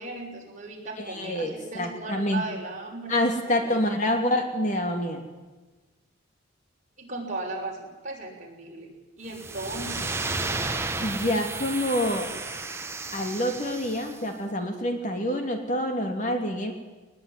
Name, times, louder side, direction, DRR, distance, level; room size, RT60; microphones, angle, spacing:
voice 1, 0.0-3.9 7.0-8.9 9.2-10.3, right 2 dB, 35° right, -1 dB, 6.1 m, -37 dB
voice 2, 1.0-2.4 3.1-5.2 11.0-12.3 13.1-16.7, left 1 dB, 35° left, 4 dB, 2.7 m, -27 dB
sound 1, 9.3-14.2, right 3 dB, 10° right, 1.3 m, -33 dB
21.0 x 21.0 x 9.8 m, 1.2 s
head